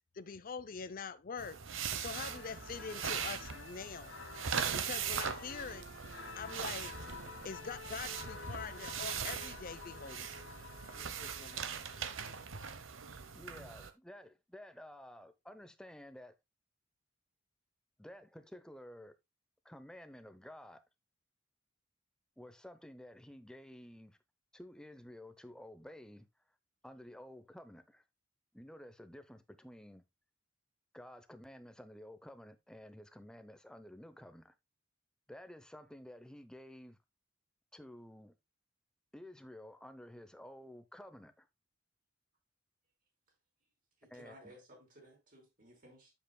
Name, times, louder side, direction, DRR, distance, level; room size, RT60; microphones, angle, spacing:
voice 1, 0.1-1.6 2.0-4.2 4.7-5.8 6.4-6.9 7.4-10.3 10.9-11.8, left 5 dB, 45° left, 0.5 m, -44 dB
sound 1, 1.4-13.9, right 7 dB, 85° right, 0.9 m, -40 dB
sound 2, 2.0-12.4, left 5 dB, 85° left, 2.0 m, -51 dB
sound 3, 5.0-9.8, equal, 65° right, 4.2 m, -62 dB
voice 2, 13.3-16.4 18.0-19.2 19.6-20.8 22.4-24.2 24.5-26.3 26.8-28.0 28.5-30.0 30.9-34.5 35.3-37.0 37.7-38.4 39.1-41.5 44.1-44.6, left 1 dB, 5° left, 0.7 m, -52 dB
voice 3, 44.0-46.1, equal, 45° right, 4.7 m, -58 dB
9.2 x 7.4 x 2.2 m
head